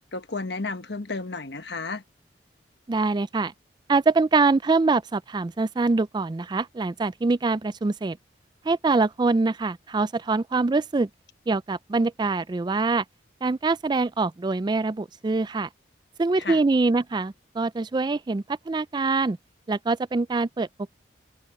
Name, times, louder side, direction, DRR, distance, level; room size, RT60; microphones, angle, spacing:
voice 1, 0.1-2.0 16.4-16.6, left 3 dB, 65° left, 1.3 m, -32 dB
voice 2, 2.9-3.5 3.9-8.2 8.6-11.1 11.5-13.0 13.4-15.7 16.2-19.4 19.7-20.7, right 3 dB, 25° right, 0.4 m, -24 dB
head